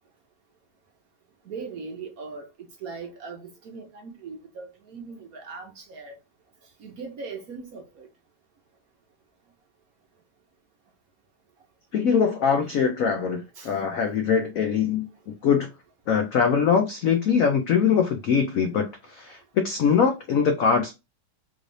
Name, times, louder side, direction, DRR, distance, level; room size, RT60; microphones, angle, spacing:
voice 1, 1.4-6.2 6.8-8.1 13.5-13.8, right 4 dB, 60° right, 1.0 m, -39 dB
voice 2, 11.9-15.1 15.4-15.7 16.1-20.9, left 6 dB, 75° left, 0.7 m, -22 dB
3.8 x 3.2 x 2.6 m
omnidirectional pair, 2.1 m